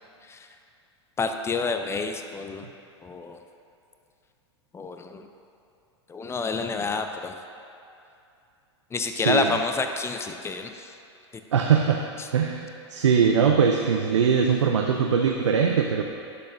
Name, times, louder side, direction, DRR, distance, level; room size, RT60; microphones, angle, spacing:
voice 1, 1.2-2.7 3.0-3.4 4.7-5.3 6.1-7.4 8.9-10.9 12.2-12.3, left 4 dB, 15° left, 6 dB, 0.5 m, -29 dB
voice 2, 9.1-9.5 11.5-12.0 12.3-16.0, right 6 dB, 85° right, 3 dB, 0.5 m, -21 dB
11.5 x 6.6 x 2.6 m, 2.6 s
hypercardioid pair, 95°, 15 cm